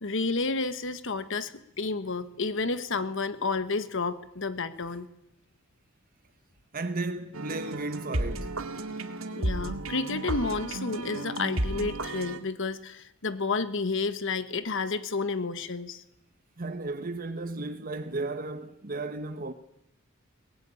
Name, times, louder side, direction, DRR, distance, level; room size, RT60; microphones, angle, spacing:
voice 1, 0.0-5.1 9.3-16.0, left 3 dB, 65° left, 1.4 m, -31 dB
voice 2, 6.7-8.5 16.6-19.5, right 2 dB, 45° right, 1.2 m, -34 dB
sound 1, 7.3-12.4, right 1 dB, 85° right, 2.1 m, -33 dB
22.5 x 20.0 x 9.8 m
head